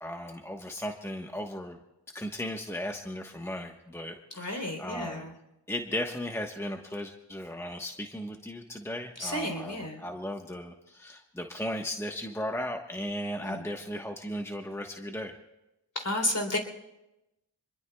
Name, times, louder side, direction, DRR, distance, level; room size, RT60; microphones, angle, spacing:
voice 1, 0.0-1.8 2.1-5.3 5.7-15.3, left 1 dB, 5° left, 3 dB, 1.2 m, -36 dB
voice 2, 4.4-5.3 9.2-10.0 13.4-13.6 16.0-16.6, left 1 dB, 45° left, 3 dB, 3.5 m, -32 dB
27.0 x 21.5 x 2.3 m, 0.95 s
wide cardioid pair, 45°, 43 cm